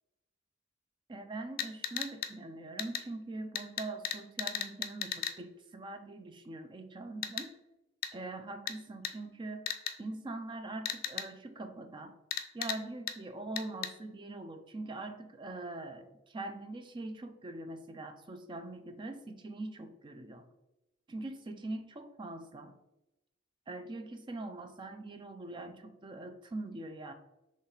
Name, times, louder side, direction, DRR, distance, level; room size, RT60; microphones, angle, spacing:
voice 1, 1.1-7.5 8.1-9.7 10.0-12.2 12.5-20.5 21.1-22.7 23.7-27.1, right 2 dB, 25° right, 7 dB, 0.4 m, -43 dB
sound 1, 1.6-2.3 2.8-3.0 3.5-5.3 7.2-7.4 8.0-8.1 8.7-8.8 9.0-9.1 9.7-9.9 10.8-11.3 12.3-12.8 13.1-13.2 13.6-13.9, left 9 dB, 45° left, 0.4 m, -35 dB
4.0 x 3.1 x 4.0 m, 0.95 s
head